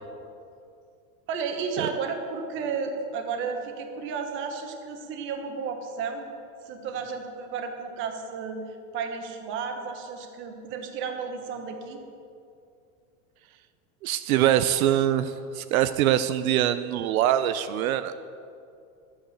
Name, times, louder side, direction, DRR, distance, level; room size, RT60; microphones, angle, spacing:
voice 1, 1.3-6.3 6.6-8.6 8.9-12.0, right 5 dB, 30° right, 5 dB, 1.2 m, -33 dB
voice 2, 14.0-18.1, right 11 dB, 75° right, 11 dB, 0.7 m, -23 dB
12.0 x 8.9 x 7.1 m, 2.5 s
supercardioid pair, 170°, 42 cm